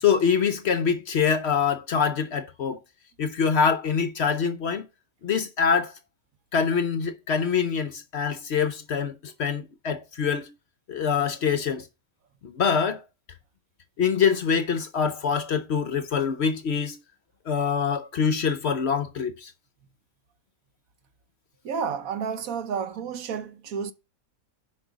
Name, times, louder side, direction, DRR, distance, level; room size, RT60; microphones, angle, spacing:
voice 1, 0.0-2.8 3.2-4.9 5.2-6.0 6.5-10.5 10.9-11.9 12.4-13.0 14.0-17.0 17.5-19.5, left 6 dB, 60° left, 0.8 m, -25 dB
voice 2, 21.6-23.9, right 6 dB, 70° right, 1.3 m, -31 dB
6.3 x 5.5 x 7.1 m
omnidirectional pair, 1.5 m